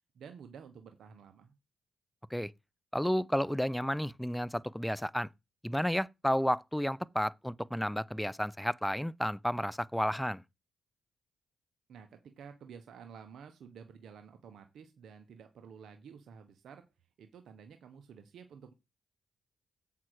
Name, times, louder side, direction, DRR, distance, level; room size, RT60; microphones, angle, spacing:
voice 1, 0.1-1.5 11.9-16.9 17.2-18.7, right 6 dB, 75° right, 1.0 m, -51 dB
voice 2, 2.9-5.3 5.6-10.4, equal, 5° left, 0.5 m, -32 dB
7.6 x 5.7 x 4.7 m
cardioid pair, 60°, 0 cm